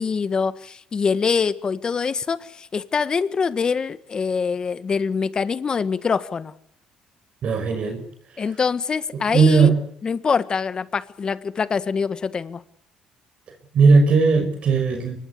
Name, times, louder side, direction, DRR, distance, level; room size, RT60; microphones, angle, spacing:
voice 1, 0.0-6.5 8.4-9.7 10.0-12.6, left 5 dB, 35° left, 14 dB, 1.7 m, -24 dB
voice 2, 7.4-8.0 9.3-9.7 13.7-15.2, right 4 dB, 55° right, 6 dB, 5.9 m, -17 dB
24.0 x 20.5 x 8.6 m, 0.68 s
cardioid pair, 90°, 2 cm